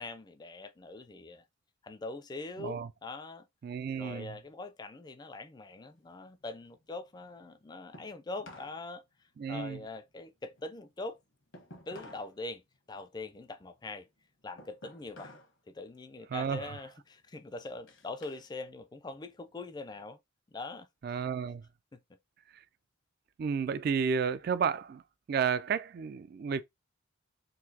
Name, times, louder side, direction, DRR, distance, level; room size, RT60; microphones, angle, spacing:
voice 1, 0.0-1.4 1.8-3.5 4.0-9.0 9.5-11.2 11.9-12.6 12.9-14.1 14.4-15.4 15.7-20.2 20.5-20.9 21.9-22.0, left 3 dB, 20° left, 0.4 m, -43 dB
voice 2, 2.6-2.9 3.6-4.3 9.4-9.8 16.3-16.7 21.0-21.6 23.4-25.0 25.3-26.6, right 6 dB, 50° right, 0.3 m, -32 dB
sound 1, 5.7-8.8 9.1-12.3 12.7-15.6 15.9-16.3 16.9-18.5 18.9-20.0, left 1 dB, 80° left, 1.1 m, -55 dB
3.9 x 2.7 x 2.7 m
head